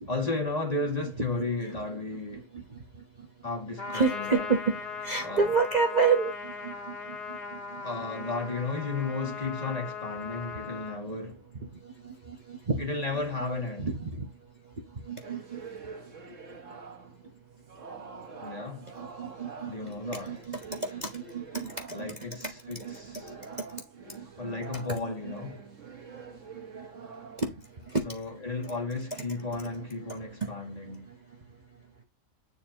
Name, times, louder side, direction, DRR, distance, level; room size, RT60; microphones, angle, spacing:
voice 1, 0.1-2.5 3.4-4.5 5.2-5.6 7.8-11.5 12.8-14.0 18.4-18.9 19.6-20.4 21.9-23.3 24.4-25.6 28.0-31.1, left 3 dB, 30° left, 2.1 m, -34 dB
Trumpet, 3.8-11.0, left 5 dB, 45° left, 1.8 m, -39 dB
voice 2, 3.9-4.7 5.0-7.8 12.0-12.8 13.8-14.3 15.1-15.6 19.0-22.1 22.4-22.5 22.8-23.0 23.3-23.8 24.2-24.3 26.5-27.1 27.4-27.5 27.9-28.0 30.4-30.5, right 4 dB, 35° right, 1.0 m, -30 dB
sound 1, 15.2-17.3 17.7-22.2 22.7-28.1, right 4 dB, 65° right, 1.8 m, -46 dB
9.5 x 4.5 x 2.9 m
omnidirectional pair, 1.4 m